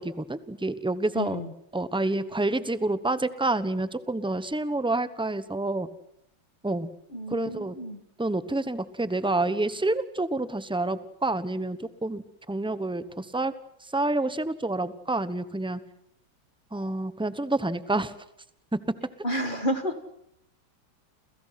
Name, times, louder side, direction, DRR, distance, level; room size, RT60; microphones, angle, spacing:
voice 1, 0.0-1.4 1.7-5.9 6.6-6.9 7.3-7.7 8.2-13.5 13.9-15.8 16.7-18.1, right 2 dB, 5° right, 13 dB, 0.6 m, -28 dB
voice 2, 1.2-1.5 7.1-8.0 19.2-20.0, equal, 25° left, 9 dB, 1.9 m, -30 dB
30.0 x 28.5 x 5.9 m, 0.75 s
omnidirectional pair, 2.2 m